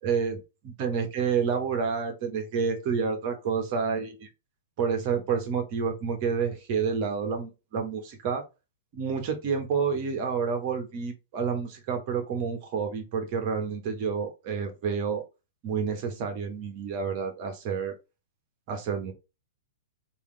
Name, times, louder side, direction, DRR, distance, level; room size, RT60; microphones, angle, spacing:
voice 1, 0.0-4.3 4.8-8.4 8.9-15.2 15.6-17.9 18.7-19.1, right 6 dB, 40° right, 5 dB, 1.2 m, -29 dB
3.5 x 2.8 x 3.3 m, 0.26 s
figure-of-eight pair, 105°, 0 cm